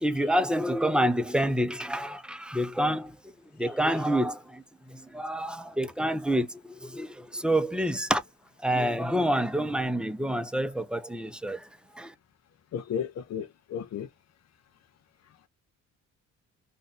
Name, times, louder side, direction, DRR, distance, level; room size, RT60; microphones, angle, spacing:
voice 1, 0.0-3.2 3.6-4.6 4.9-8.2 8.6-11.7 12.0-12.1, equal, 5° right, 0.7 m, -27 dB
voice 2, 12.7-14.1, left 8 dB, 60° left, 0.7 m, -34 dB
2.7 x 2.5 x 4.1 m
cardioid pair, 90°, 30 cm